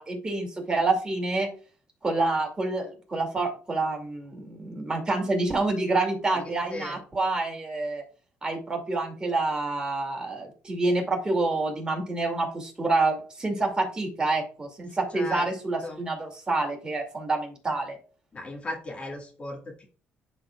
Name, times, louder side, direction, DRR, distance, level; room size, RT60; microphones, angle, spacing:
voice 1, 0.0-1.5 2.0-8.0 8.4-18.0, right 2 dB, 20° right, 2 dB, 2.3 m, -27 dB
voice 2, 6.3-7.0 15.1-15.4 15.8-16.0 18.3-19.8, left 2 dB, 30° left, 0 dB, 1.7 m, -37 dB
11.0 x 4.0 x 2.3 m, 0.39 s
cardioid pair, 90°, 4 cm